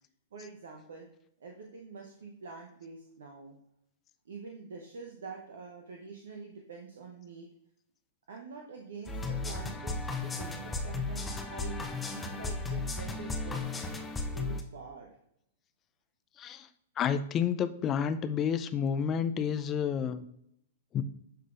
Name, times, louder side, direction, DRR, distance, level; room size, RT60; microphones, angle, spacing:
voice 1, 0.3-1.1 1.4-3.6 4.3-7.5 8.3-13.7 14.3-15.1, right 4 dB, 70° right, 1 dB, 0.8 m, -46 dB
sound 1, 9.1-14.6, left 3 dB, 10° left, 0.9 m, -35 dB
voice 2, 17.0-20.3 20.9-21.0, left 7 dB, 30° left, 10 dB, 0.5 m, -30 dB
11.0 x 3.9 x 2.5 m, 0.73 s
hypercardioid pair, 110°, 0 cm